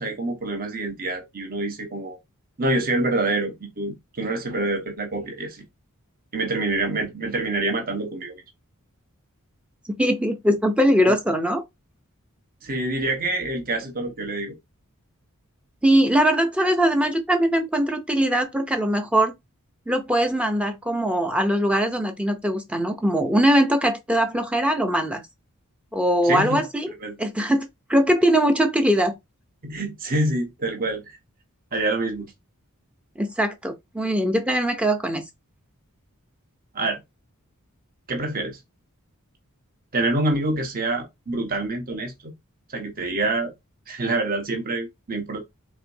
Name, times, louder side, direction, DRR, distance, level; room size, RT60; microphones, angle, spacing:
voice 1, 0.0-2.2 2.6-5.6 6.3-8.4 12.6-14.6 26.2-26.6 27.0-27.2 29.6-31.2 31.7-32.3 36.7-37.0 38.1-38.6 39.9-42.3 42.7-43.5 43.9-45.4, right 2 dB, 40° right, 1.2 m, -26 dB
voice 2, 10.0-11.6 15.8-19.3 19.9-25.2 25.9-26.9 27.2-29.1 33.2-35.2, equal, 5° right, 0.6 m, -21 dB
4.8 x 3.5 x 2.7 m
head